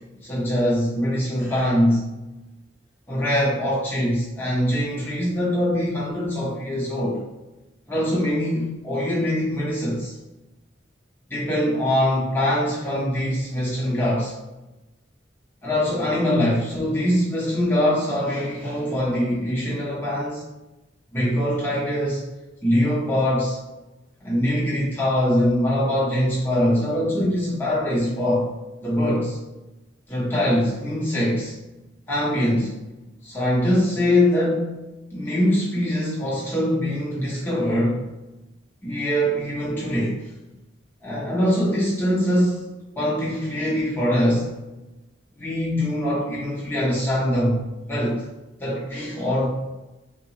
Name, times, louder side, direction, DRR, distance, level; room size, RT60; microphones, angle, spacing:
voice 1, 0.2-2.1 3.1-7.2 7.9-10.1 11.3-14.3 15.6-20.4 21.1-22.2 22.6-23.6 24.2-28.5 28.8-29.4 30.1-31.5 32.1-32.8 33.2-34.8 35.1-38.0 38.8-40.2 41.0-42.6 43.0-44.5 45.4-48.2 48.6-49.5, equal, 10° left, -7 dB, 0.7 m, -23 dB
2.8 x 2.3 x 2.7 m, 1.0 s
head